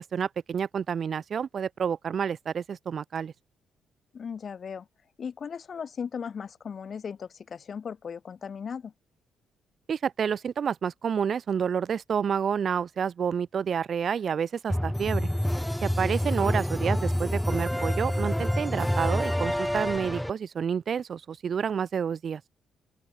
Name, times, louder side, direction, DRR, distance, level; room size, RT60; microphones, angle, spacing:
voice 1, 0.0-3.3 9.9-15.3 15.8-22.4, right 7 dB, 50° right, 0.6 m, -29 dB
voice 2, 4.1-4.9 5.2-8.9 16.4-16.6, left 6 dB, 45° left, 0.9 m, -37 dB
sound 1, 14.7-20.3, equal, 5° left, 1.4 m, -27 dB
open air
cardioid pair, 90°, 0 cm